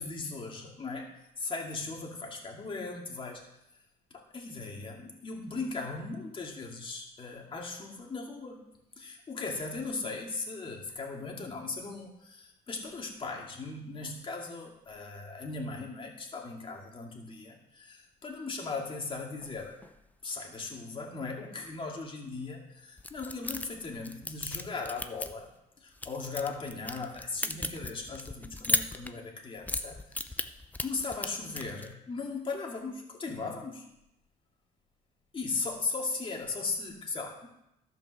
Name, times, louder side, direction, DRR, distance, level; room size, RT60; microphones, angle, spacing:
voice 1, 0.0-3.4 4.1-8.6 9.0-19.8 20.2-25.5 25.8-30.5 30.8-33.9 35.3-37.5, left 3 dB, 30° left, 0 dB, 2.2 m, -38 dB
sound 1, 19.4-20.1 23.0-25.5 26.0-29.2 29.6-31.9, left 2 dB, 10° left, 0.6 m, -36 dB
12.5 x 5.3 x 6.4 m, 0.86 s
cardioid pair, 110°, 17 cm